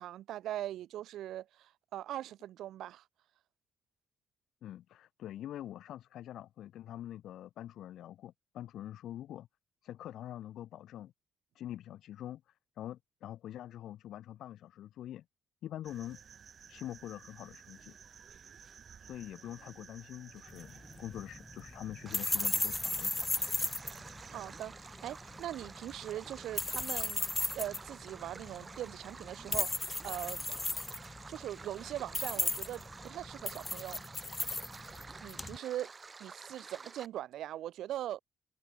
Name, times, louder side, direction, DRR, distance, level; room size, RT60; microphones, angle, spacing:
voice 1, 0.0-3.0 24.3-27.2 27.5-30.4 31.3-34.0 35.2-35.9 36.2-38.2, right 12 dB, 80° right, 3.3 m, -41 dB
voice 2, 4.6-9.5 9.8-11.1 11.5-12.4 12.8-15.2 15.6-16.2 16.7-18.0 19.0-23.3, left 12 dB, 75° left, 2.7 m, -45 dB
sound 1, 15.8-24.6, right 7 dB, 50° right, 2.0 m, -55 dB
sound 2, 20.5-35.6, left 3 dB, 20° left, 1.6 m, -37 dB
Stream, 22.1-37.1, right 4 dB, 30° right, 7.6 m, -50 dB
cardioid pair, 90°, 0 cm